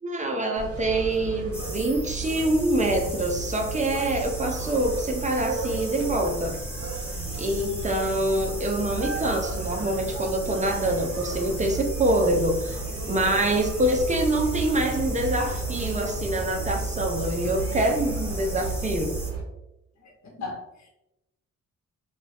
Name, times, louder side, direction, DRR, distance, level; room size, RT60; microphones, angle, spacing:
voice 1, 0.0-6.6 7.4-19.2, right 1 dB, 25° right, 3 dB, 0.5 m, -25 dB
sound 1, 0.6-19.4, right 3 dB, 50° right, 0.8 m, -33 dB
sound 2, 1.5-19.3, right 1 dB, 5° left, 1.0 m, -40 dB
voice 2, 20.2-20.9, left 3 dB, 65° left, -1 dB, 0.8 m, -37 dB
2.6 x 2.3 x 3.3 m, 0.91 s
cardioid pair, 90°, 30 cm